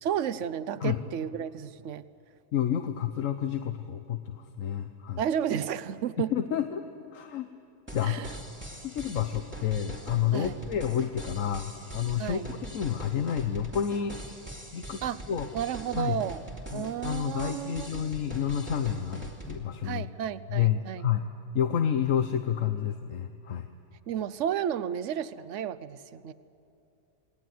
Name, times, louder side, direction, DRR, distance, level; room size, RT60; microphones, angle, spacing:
voice 1, 0.0-2.0 5.2-6.3 8.0-8.3 10.3-10.6 12.2-12.5 15.0-15.2 15.5-16.4 16.7-18.1 19.8-21.1 24.1-26.3, right 9 dB, 65° right, 14 dB, 1.1 m, -32 dB
voice 2, 2.5-5.2 6.3-6.8 7.1-7.5 7.9-8.2 8.8-14.2 14.7-15.0 15.3-15.5 15.9-16.2 16.7-20.1 20.5-21.3 21.5-23.7, left 9 dB, 65° left, 8 dB, 1.3 m, -29 dB
sound 1, 7.9-19.6, right 1 dB, 10° right, 2.7 m, -42 dB
28.5 x 20.0 x 9.3 m, 2.7 s
omnidirectional pair, 1.5 m